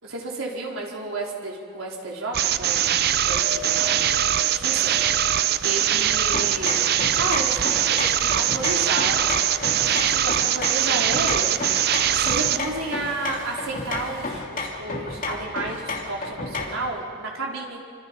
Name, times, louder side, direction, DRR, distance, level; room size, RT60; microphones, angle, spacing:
voice 1, 0.0-2.8 3.2-4.1 4.4-4.9 5.6-6.8 7.2-9.3 9.9-11.6 12.1-17.8, right 2 dB, 85° right, -2 dB, 4.4 m, -32 dB
sound 1, 2.3-12.7, right 11 dB, 50° right, 0.5 m, -22 dB
sound 2, 3.0-14.3, right 2 dB, 70° right, 6.8 m, -41 dB
sound 3, 6.3-16.9, left 3 dB, 40° left, 2.9 m, -32 dB
27.5 x 25.0 x 5.4 m, 2.2 s
head